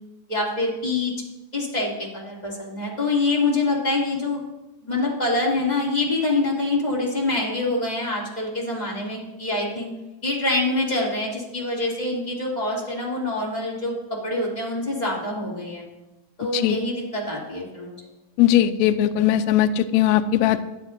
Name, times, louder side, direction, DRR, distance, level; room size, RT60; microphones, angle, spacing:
voice 1, 0.3-1.1 1.5-4.4 4.8-9.9 10.2-13.9 14.2-15.8 16.4-17.9, left 2 dB, 15° left, -5 dB, 2.5 m, -25 dB
voice 2, 18.4-20.7, left 12 dB, 85° left, 9 dB, 1.6 m, -19 dB
22.5 x 8.1 x 2.7 m, 1.0 s
omnidirectional pair, 3.7 m